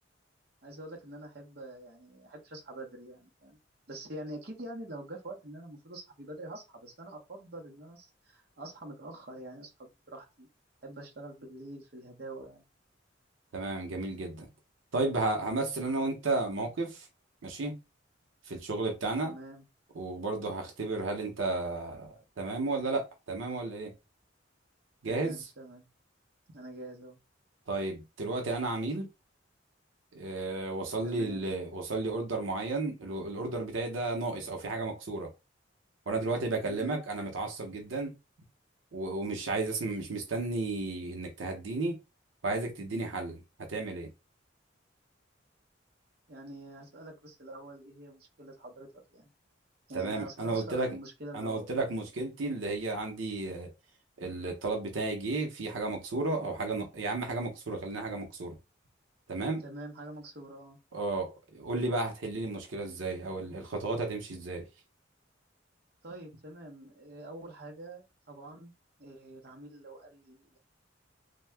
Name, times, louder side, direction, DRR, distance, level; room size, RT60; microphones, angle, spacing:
voice 1, 0.6-3.6 3.9-10.5 10.8-12.6 19.2-19.6 25.1-25.9 26.5-27.2 31.0-31.6 36.6-37.1 46.3-49.3 49.9-51.7 59.6-60.8 66.0-68.7 69.0-70.6, right 1 dB, 55° right, 0.8 m, -45 dB
voice 2, 13.5-14.5 14.9-17.1 17.4-17.8 18.5-19.3 19.9-23.9 25.0-25.4 27.7-29.1 30.1-35.3 36.1-38.1 38.9-42.0 42.4-43.4 43.7-44.1 49.9-51.0 51.3-53.7 54.2-58.5 59.3-59.6 60.9-64.6, right 3 dB, 90° right, 0.8 m, -33 dB
2.7 x 2.2 x 3.3 m
head